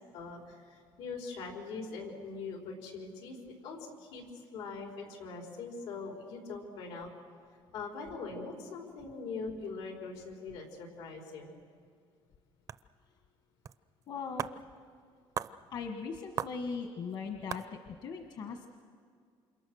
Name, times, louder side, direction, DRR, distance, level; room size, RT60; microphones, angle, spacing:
voice 1, 0.1-4.2 4.5-7.1 7.7-11.5, left 4 dB, 90° left, 1 dB, 5.0 m, -42 dB
sound 1, 12.7-12.8 13.6-13.7 14.0-14.1 14.4-14.6 15.4-15.5 16.4-16.6 17.1-17.2 17.5-17.7, right 8 dB, 35° right, 0.5 m, -36 dB
voice 2, 14.1-14.5 15.7-18.8, left 5 dB, 50° left, 5 dB, 1.4 m, -39 dB
28.5 x 27.0 x 6.5 m, 2.2 s
cardioid pair, 160°, 9 cm